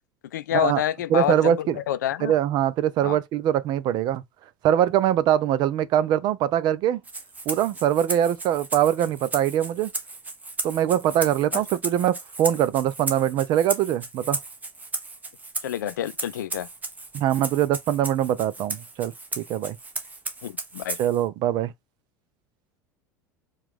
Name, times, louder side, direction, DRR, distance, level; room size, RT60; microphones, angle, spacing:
voice 1, 0.3-2.3 3.0-3.2 11.5-11.6 15.6-16.7 20.4-21.0, left 11 dB, 70° left, 0.4 m, -27 dB
voice 2, 1.1-1.8 2.2-4.2 4.6-7.0 7.5-9.9 10.6-14.4 17.1-19.8 21.0-21.7, right 11 dB, 45° right, 0.6 m, -23 dB
Rattle (instrument), 7.0-21.2, right 3 dB, 15° right, 1.1 m, -35 dB
4.7 x 2.5 x 3.7 m
figure-of-eight pair, 75°, 10 cm